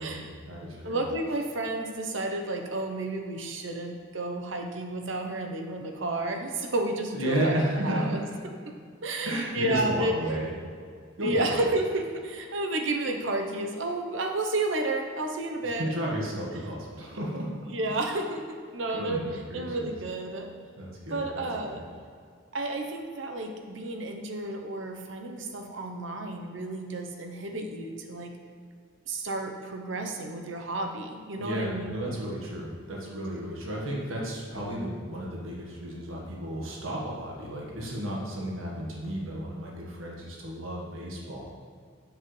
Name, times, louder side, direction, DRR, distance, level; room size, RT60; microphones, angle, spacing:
voice 1, 0.0-1.0 7.1-8.4 9.2-10.5 11.2-11.6 15.6-17.5 17.9-18.0 18.9-19.9 20.8-21.8 31.4-41.5, right 1 dB, 85° right, -3 dB, 1.6 m, -33 dB
voice 2, 0.8-7.6 7.8-8.2 9.0-10.2 11.2-15.9 17.7-19.2 19.5-20.5 21.1-21.8 22.5-28.3 29.1-32.0, right 2 dB, 65° right, 3 dB, 0.9 m, -31 dB
7.4 x 7.1 x 3.3 m, 2.1 s
head